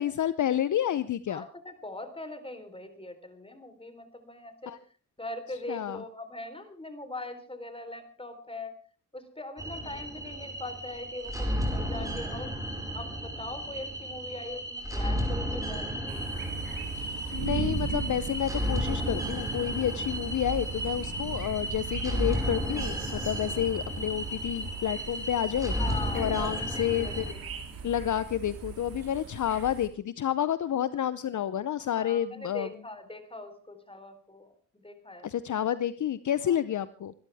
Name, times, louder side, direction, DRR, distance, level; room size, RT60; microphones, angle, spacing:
voice 1, 0.0-1.4 4.7-4.8 5.7-6.0 17.3-25.7 26.1-27.3 27.8-32.7 35.2-37.1, left 10 dB, 60° left, 15 dB, 0.7 m, -29 dB
voice 2, 1.3-4.7 5.2-8.8 9.1-12.6 12.9-16.3 25.8-27.5 31.9-34.5 34.8-35.3 36.5-36.6, left 2 dB, 15° left, 8 dB, 3.8 m, -41 dB
sound 1, 9.6-27.3, equal, 10° right, 5.2 m, -33 dB
sound 2, 16.1-29.9, right 5 dB, 75° right, 3.0 m, -38 dB
25.0 x 13.0 x 3.5 m, 0.39 s
cardioid pair, 60°, 35 cm